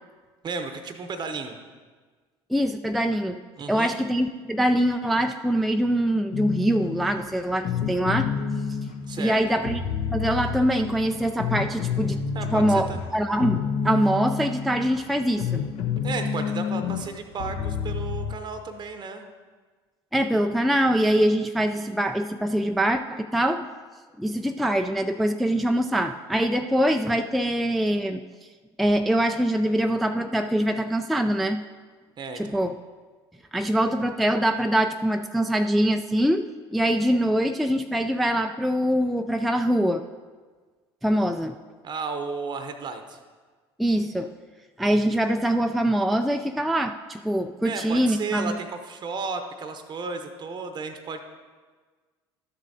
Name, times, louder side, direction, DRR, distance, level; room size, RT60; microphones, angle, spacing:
voice 1, 0.4-1.6 3.6-4.0 9.1-9.4 12.3-13.0 16.0-19.2 32.2-32.6 41.8-43.2 47.6-51.2, right 4 dB, 30° right, 7 dB, 0.8 m, -33 dB
voice 2, 2.5-3.4 3.7-8.3 9.2-9.8 10.1-12.2 12.5-15.6 20.1-23.7 24.2-28.2 28.8-31.6 32.4-32.7 33.5-40.0 41.0-41.5 43.8-44.3 44.8-48.5, equal, ahead, 6 dB, 0.3 m, -23 dB
sound 1, 6.3-18.4, left 6 dB, 60° left, 0.9 m, -29 dB
12.5 x 6.9 x 2.7 m, 1.4 s
figure-of-eight pair, 65°, 14 cm